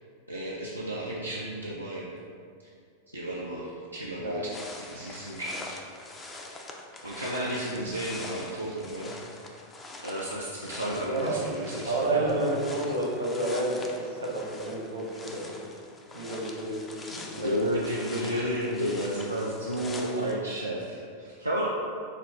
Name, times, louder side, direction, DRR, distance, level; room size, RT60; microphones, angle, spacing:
voice 1, 0.3-2.1 3.1-6.5 7.0-9.6 10.0-12.4 17.3-21.7, equal, 90° right, -5 dB, 0.4 m, -33 dB
sound 1, 4.5-20.4, left 2 dB, 20° left, 0.4 m, -44 dB
voice 2, 11.0-11.4 11.9-15.5 16.1-17.7, right 2 dB, 70° right, -3 dB, 0.9 m, -30 dB
5.3 x 2.4 x 3.5 m, 2.3 s
figure-of-eight pair, 90°, 0 cm